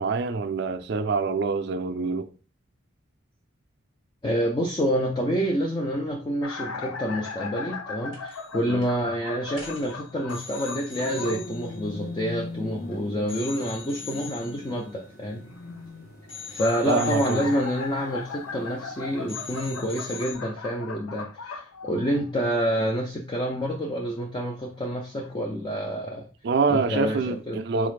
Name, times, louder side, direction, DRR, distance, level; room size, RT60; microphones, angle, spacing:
voice 1, 0.0-2.3 8.7-8.8 16.9-17.5 26.4-27.9, right 4 dB, 55° right, 0.3 m, -26 dB
voice 2, 4.2-15.4 16.5-26.3 26.7-27.6, equal, 20° left, 0.3 m, -28 dB
sound 1, 6.4-11.4 16.3-22.4 23.5-23.7 24.7-24.8 25.2-25.3, left 4 dB, 90° left, 0.5 m, -37 dB
sound 2, 8.1-8.6 8.8-9.0 9.5-12.8 13.3-15.9 16.3-19.0 19.3-20.4, left 6 dB, 70° left, 1.4 m, -43 dB
sound 3, 11.0-19.7, left 1 dB, 45° left, 0.7 m, -41 dB
3.9 x 2.4 x 3.2 m
head